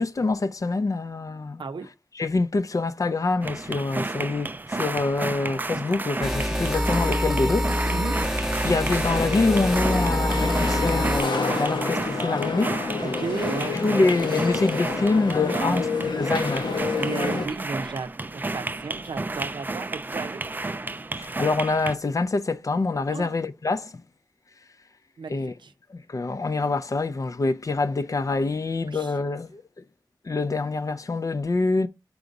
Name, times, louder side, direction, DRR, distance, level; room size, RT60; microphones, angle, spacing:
voice 1, 0.0-1.6 2.2-7.7 8.6-12.8 13.6-15.8 16.1-16.7 21.2-24.0 25.3-25.5 25.9-29.6 30.2-31.9, left 3 dB, 45° left, 0.5 m, -25 dB
voice 2, 1.6-1.9 7.9-8.2 13.0-13.8 15.5-16.0 17.0-20.4 23.1-23.4 25.2-25.7 28.9-29.1, right 4 dB, 85° right, 0.6 m, -34 dB
sound 1, 3.4-21.9, right 2 dB, 25° right, 0.3 m, -32 dB
sound 2, 6.2-11.2, equal, 5° right, 0.8 m, -25 dB
sound 3, 9.1-17.5, left 4 dB, 80° left, 0.9 m, -29 dB
4.7 x 3.9 x 5.2 m
wide cardioid pair, 70°, 8 cm